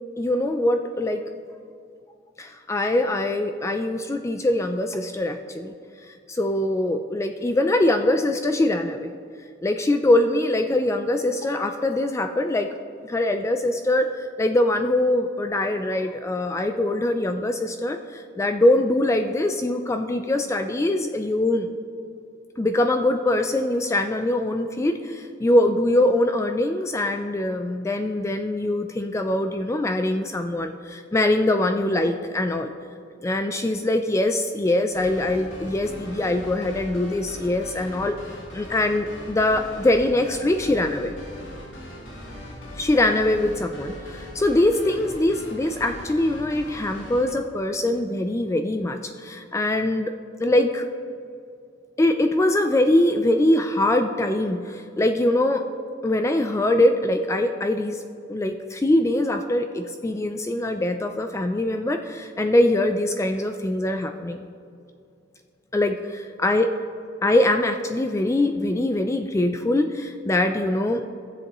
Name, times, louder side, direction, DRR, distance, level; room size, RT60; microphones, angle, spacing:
voice 1, 0.2-1.2 2.4-5.7 6.1-9.1 9.6-12.7 13.0-21.7 22.6-32.7 33.2-38.2 38.5-41.1 42.7-50.1 50.4-50.9 52.0-55.6 56.0-58.0 58.3-64.4 65.7-66.0 66.4-66.7 67.2-71.1, left 1 dB, 15° left, 6 dB, 0.3 m, -23 dB
sound 1, 34.9-47.3, left 1 dB, 70° left, 1.8 m, -40 dB
15.5 x 7.5 x 3.0 m, 2.4 s
head